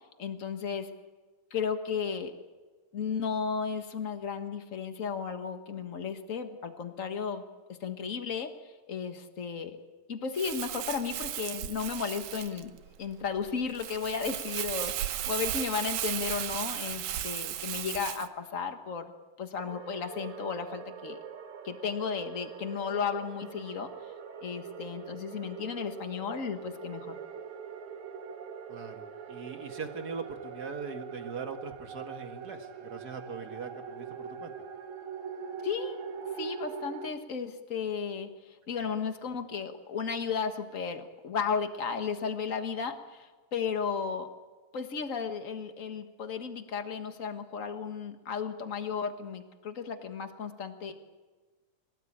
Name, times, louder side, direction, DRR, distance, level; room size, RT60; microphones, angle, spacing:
voice 1, 0.2-0.9 1.5-2.3 2.9-7.4 7.8-9.8 10.1-12.7 13.0-19.1 19.4-21.2 21.6-23.9 24.4-27.2 35.6-36.0 36.4-44.3 44.7-50.9, left 6 dB, 50° left, 7 dB, 0.9 m, -34 dB
Crumpling crinkling, 10.3-18.3, right 12 dB, 90° right, 2.6 m, -35 dB
sound 1, 19.6-37.1, right 6 dB, 65° right, 2.8 m, -43 dB
voice 2, 28.7-34.5, right 5 dB, 40° right, 5 dB, 1.6 m, -41 dB
24.0 x 17.5 x 8.8 m, 1.3 s
omnidirectional pair, 3.7 m